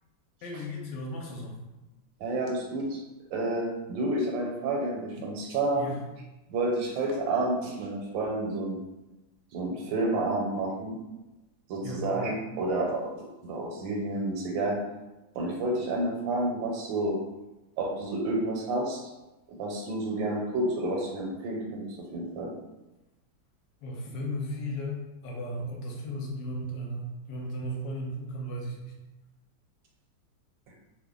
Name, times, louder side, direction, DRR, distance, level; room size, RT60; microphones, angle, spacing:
voice 1, 0.4-1.6 5.7-6.0 11.8-12.1 23.8-28.9, equal, 75° left, -1 dB, 1.2 m, -35 dB
voice 2, 2.2-3.0 3.3-5.9 6.5-8.8 9.5-10.9 11.7-14.8 15.3-17.2 17.8-19.1 19.5-21.9 22.1-22.5, right 2 dB, 80° right, 0 dB, 1.4 m, -30 dB
3.1 x 2.2 x 3.7 m, 1.0 s
omnidirectional pair, 2.0 m